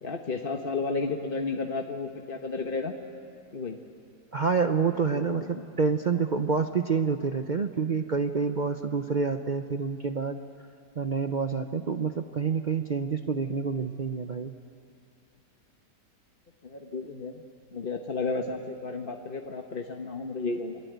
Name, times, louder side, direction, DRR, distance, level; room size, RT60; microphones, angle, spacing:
voice 1, 0.0-3.0 3.5-3.8 5.1-5.6 16.6-17.4 17.7-20.8, left 3 dB, 35° left, 3 dB, 1.2 m, -32 dB
voice 2, 4.3-10.4 11.0-14.5, right 5 dB, 55° right, 7 dB, 0.5 m, -28 dB
28.0 x 22.5 x 9.3 m, 2.5 s
omnidirectional pair, 1.8 m